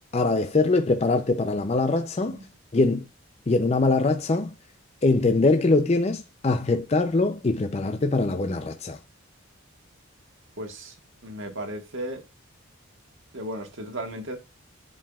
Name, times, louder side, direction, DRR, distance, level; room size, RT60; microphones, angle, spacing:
voice 1, 0.1-2.4 2.7-3.0 3.5-4.5 5.0-9.0, left 3 dB, 30° left, 0.4 m, -23 dB
voice 2, 10.6-10.9 11.2-12.2 13.3-14.4, right 1 dB, 60° right, 1.4 m, -35 dB
10.5 x 4.7 x 2.3 m
head